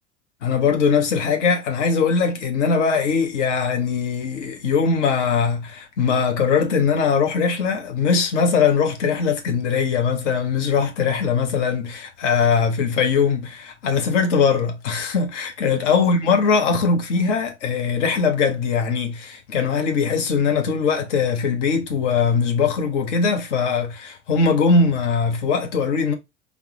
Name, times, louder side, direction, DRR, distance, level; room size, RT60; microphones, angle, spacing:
voice 1, 0.4-26.1, left 5 dB, 70° left, 0.8 m, -21 dB
4.9 x 2.0 x 3.1 m
figure-of-eight pair, 75°, 37 cm